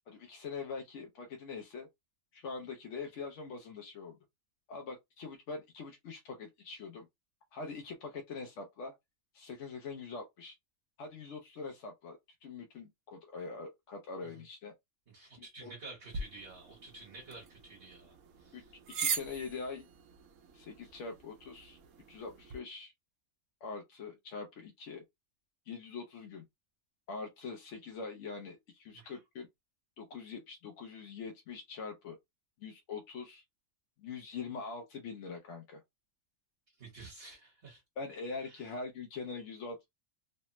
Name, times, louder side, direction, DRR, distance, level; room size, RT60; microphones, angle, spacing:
voice 1, 0.1-1.9 2.3-4.2 4.7-7.1 7.5-8.9 9.3-10.5 11.0-14.7 15.4-15.7 18.5-18.6 19.0-19.9 20.5-21.8 22.1-22.9 23.6-25.0 25.7-26.5 27.1-29.5 30.0-32.2 32.6-33.4 34.0-35.8 38.0-39.9, left 4 dB, 75° left, 0.9 m, -43 dB
voice 2, 15.1-18.7 28.9-29.2 36.8-37.8 38.4-38.7, right 3 dB, 50° right, 1.3 m, -51 dB
sound 1, 16.1-22.6, right 5 dB, 85° right, 1.0 m, -42 dB
3.2 x 2.0 x 2.9 m
omnidirectional pair, 1.3 m